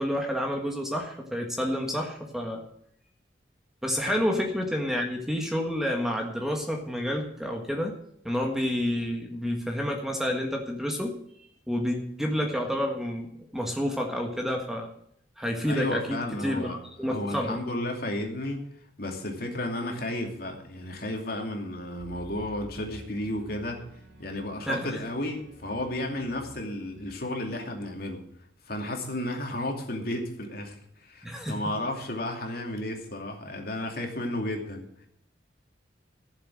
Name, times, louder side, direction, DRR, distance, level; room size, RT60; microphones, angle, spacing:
voice 1, 0.0-2.6 3.8-7.9 8.2-13.3 13.5-14.9 15.4-17.6 24.7-24.9 31.2-31.6, equal, ahead, 1 dB, 1.5 m, -29 dB
voice 2, 15.7-16.8 17.1-18.6 19.0-23.8 24.2-28.2 28.7-35.1, left 1 dB, 55° left, 2 dB, 2.6 m, -33 dB
sound 1, 22.0-27.7, right 1 dB, 65° right, 3.6 m, -50 dB
14.5 x 7.4 x 6.3 m, 0.70 s
head